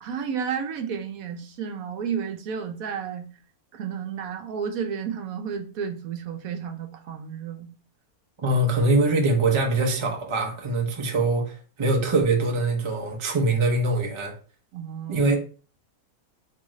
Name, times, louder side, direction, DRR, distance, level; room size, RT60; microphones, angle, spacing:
voice 1, 0.0-3.3 3.7-7.7 14.7-15.3, right 7 dB, 70° right, 1.0 m, -32 dB
voice 2, 8.4-14.3 15.1-15.4, right 2 dB, 35° right, 0.4 m, -23 dB
3.6 x 3.0 x 3.0 m
omnidirectional pair, 1.6 m